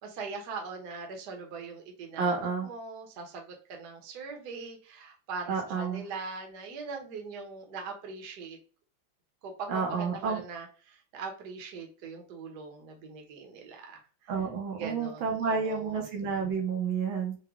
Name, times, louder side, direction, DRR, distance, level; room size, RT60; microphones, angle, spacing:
voice 1, 0.0-8.6 9.4-14.3 14.7-16.1, right 4 dB, 55° right, 3 dB, 1.4 m, -41 dB
voice 2, 2.2-2.7 5.5-6.0 9.7-10.4 14.3-17.4, right 5 dB, 70° right, 2 dB, 1.5 m, -30 dB
4.9 x 2.2 x 3.5 m, 0.38 s
omnidirectional pair, 2.3 m